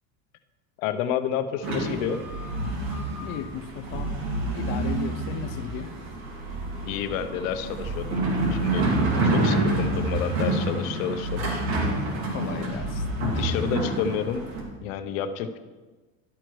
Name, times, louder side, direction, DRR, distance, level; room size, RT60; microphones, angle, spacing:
voice 1, 0.8-2.2 6.9-8.2 8.5-8.9 9.2-11.6 12.6-12.7 13.2-14.4 14.8-15.6, left 8 dB, 80° left, 9 dB, 0.8 m, -29 dB
sound 1, 1.6-14.6, right 2 dB, 75° right, 2.4 m, -28 dB
voice 2, 3.2-5.9 9.6-9.7 12.3-13.0, left 10 dB, 35° left, 8 dB, 0.4 m, -36 dB
12.0 x 4.6 x 4.6 m, 1.3 s
supercardioid pair, 150°, 40 cm